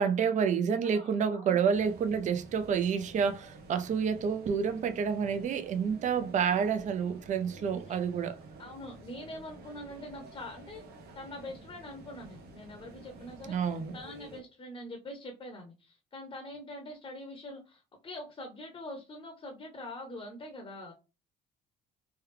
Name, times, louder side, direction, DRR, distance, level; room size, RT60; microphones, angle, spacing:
voice 1, 0.0-8.4 13.5-13.9, right 6 dB, 45° right, 0.5 m, -29 dB
voice 2, 0.8-1.6 7.7-8.0 8.6-10.8 11.1-20.9, left 1 dB, 30° left, 0.7 m, -44 dB
sound 1, 1.7-14.4, right 2 dB, 70° right, 0.8 m, -50 dB
3.2 x 2.3 x 3.3 m
cardioid pair, 110°, 17 cm